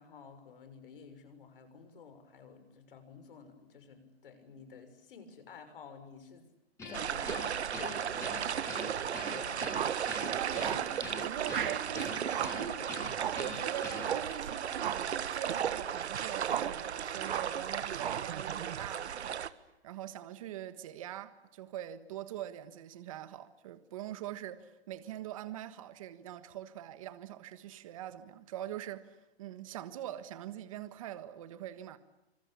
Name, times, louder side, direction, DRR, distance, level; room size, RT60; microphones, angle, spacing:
voice 1, 0.0-6.5 6.9-9.7 10.6-10.7, left 6 dB, 55° left, 6.5 m, -52 dB
Guitar, 6.8-14.3, left 3 dB, 10° left, 6.6 m, -45 dB
sound 1, 6.9-19.5, right 8 dB, 80° right, 1.7 m, -35 dB
sound 2, 9.7-10.0 10.6-10.9 11.5-11.9 12.3-12.7 13.1-13.5 14.0-14.3 14.8-15.1 15.5-15.9 16.4-16.8 17.2-17.6 18.0-18.3, right 10 dB, 50° right, 1.7 m, -37 dB
voice 2, 10.3-32.0, right 11 dB, 30° right, 1.5 m, -43 dB
26.0 x 26.0 x 8.6 m
hypercardioid pair, 175°, 33 cm